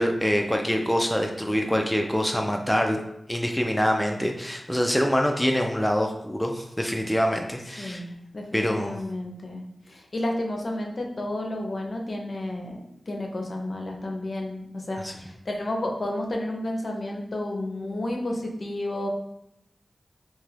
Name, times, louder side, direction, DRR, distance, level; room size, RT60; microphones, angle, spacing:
voice 1, 0.0-3.0 3.3-8.0 8.5-9.0 15.0-15.1, equal, 10° left, 2 dB, 0.3 m, -25 dB
voice 2, 7.8-12.8 13.1-19.1, left 1 dB, 60° left, 1 dB, 0.5 m, -31 dB
2.7 x 2.3 x 3.2 m, 0.80 s
cardioid pair, 50°, 0 cm